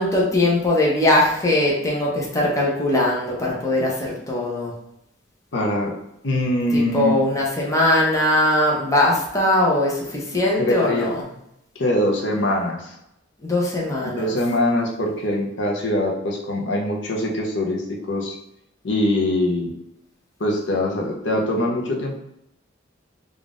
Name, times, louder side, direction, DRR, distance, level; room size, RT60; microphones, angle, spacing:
voice 1, 0.0-4.7 6.7-11.3 13.4-14.3, left 1 dB, 15° left, -4 dB, 0.7 m, -20 dB
voice 2, 5.5-6.0 6.2-7.1 10.6-11.1 11.8-13.0 14.0-18.4 18.8-19.7 20.4-22.2, left 1 dB, 65° left, 0 dB, 0.7 m, -23 dB
3.8 x 2.5 x 3.6 m, 0.81 s
head